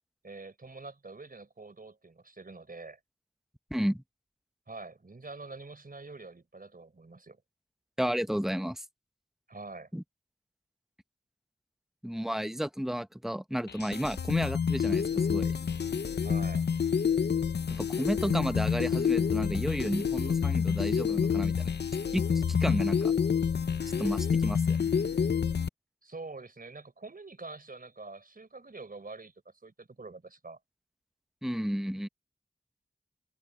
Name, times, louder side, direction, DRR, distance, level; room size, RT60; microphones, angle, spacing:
voice 1, 0.2-3.0 4.7-7.4 9.5-9.9 16.2-16.6 26.0-30.6, right 3 dB, 60° right, 4.9 m, -46 dB
voice 2, 3.7-4.0 8.0-8.8 9.9-10.0 12.0-15.5 17.7-21.7 22.1-23.1 24.0-24.9 31.4-32.1, equal, ahead, 0.9 m, -32 dB
sound 1, 13.7-25.7, left 7 dB, 85° left, 0.6 m, -28 dB
wide cardioid pair, 55°, 17 cm